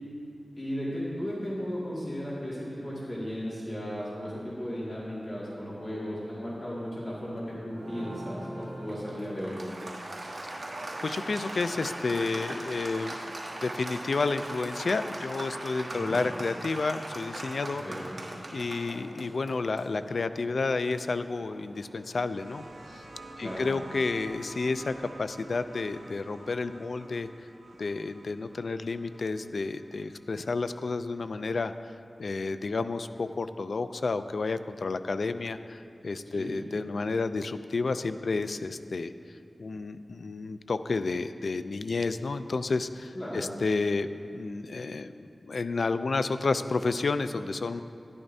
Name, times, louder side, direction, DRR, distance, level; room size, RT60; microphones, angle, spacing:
voice 1, 0.5-9.6 15.9-16.2 17.8-18.1 23.4-23.7 36.3-36.6 43.1-43.5, equal, 40° left, -8 dB, 2.1 m, -35 dB
Applause, 7.7-22.1, right 1 dB, 55° right, 1.4 m, -40 dB
voice 2, 11.0-13.2 13.6-17.8 18.5-22.6 22.9-23.0 23.4-27.3 27.8-31.9 32.2-39.1 39.6-44.1 44.3-47.8, left 3 dB, 80° left, 11 dB, 0.3 m, -31 dB
sound 1, 22.0-31.3 32.4-32.5, right 2 dB, 75° right, 0.9 m, -48 dB
12.0 x 11.0 x 2.7 m, 2.6 s
wide cardioid pair, 80°, 0 cm